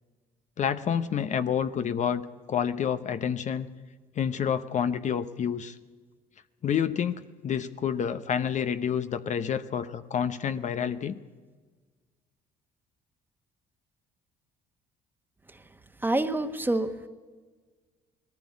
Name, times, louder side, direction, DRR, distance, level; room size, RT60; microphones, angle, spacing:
voice 1, 0.6-2.2 2.5-3.7 4.2-5.8 6.6-11.2, left 8 dB, 45° left, 11 dB, 0.8 m, -28 dB
voice 2, 16.0-17.1, right 2 dB, 10° right, 9 dB, 1.3 m, -27 dB
20.0 x 15.0 x 9.6 m, 1.4 s
cardioid pair, 110°, 17 cm